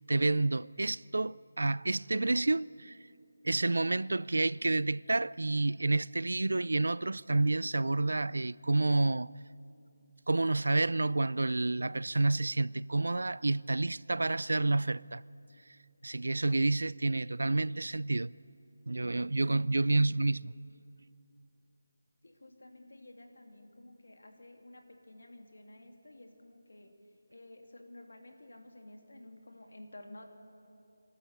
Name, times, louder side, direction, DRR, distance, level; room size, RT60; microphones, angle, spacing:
voice 1, 0.1-3.0 3.4-9.3 10.3-15.2 16.0-18.3 18.9-20.5, right 2 dB, 80° right, 0.4 m, -29 dB
voice 2, 19.8-20.2 22.2-26.9 27.3-30.2, left 1 dB, 85° left, 2.8 m, -52 dB
27.0 x 13.0 x 8.2 m
figure-of-eight pair, 170°, 0 cm